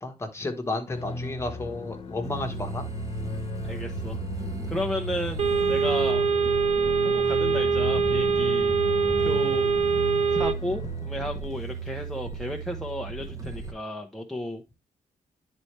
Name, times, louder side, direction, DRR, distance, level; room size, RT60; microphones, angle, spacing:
voice 1, 0.0-2.8, left 2 dB, 20° left, 1.4 m, -32 dB
sound 1, 0.9-11.6, left 3 dB, 40° left, 1.2 m, -36 dB
sound 2, 2.2-13.7, right 6 dB, 25° right, 1.2 m, -36 dB
voice 2, 3.6-4.2 4.7-5.4 5.7-6.3 7.0-8.7 9.2-9.7 10.3-14.6, left 1 dB, ahead, 0.8 m, -33 dB
sound 3, 5.4-10.5, right 5 dB, 45° right, 0.7 m, -23 dB
10.5 x 4.2 x 3.2 m
cardioid pair, 135°, 14 cm